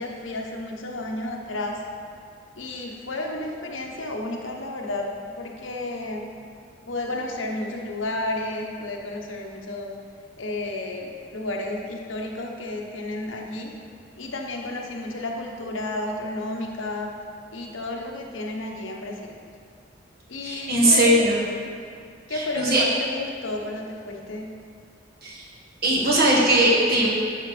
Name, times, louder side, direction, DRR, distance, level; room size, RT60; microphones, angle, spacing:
voice 1, 0.0-1.8 2.6-5.1 5.4-6.3 6.9-9.9 10.4-13.7 14.2-17.1 17.5-19.4 20.3-21.2 22.3-24.5, left 2 dB, 85° left, 0 dB, 1.1 m, -32 dB
voice 2, 20.4-21.4 22.3-22.8 25.2-25.4 25.8-27.1, right 1 dB, 50° right, -4 dB, 1.7 m, -19 dB
11.5 x 6.6 x 3.3 m, 2.2 s
head